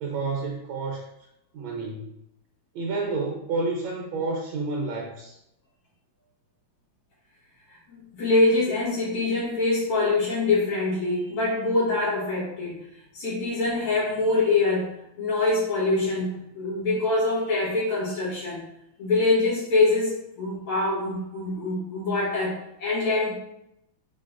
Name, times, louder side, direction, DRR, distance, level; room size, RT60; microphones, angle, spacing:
voice 1, 0.0-1.0 1.5-2.1 2.7-5.4, right 3 dB, 75° right, -1 dB, 1.4 m, -30 dB
voice 2, 7.7-12.8 13.1-18.6 19.0-23.4, left 2 dB, 80° left, -10 dB, 2.6 m, -24 dB
4.5 x 3.9 x 2.5 m, 0.81 s
omnidirectional pair, 2.3 m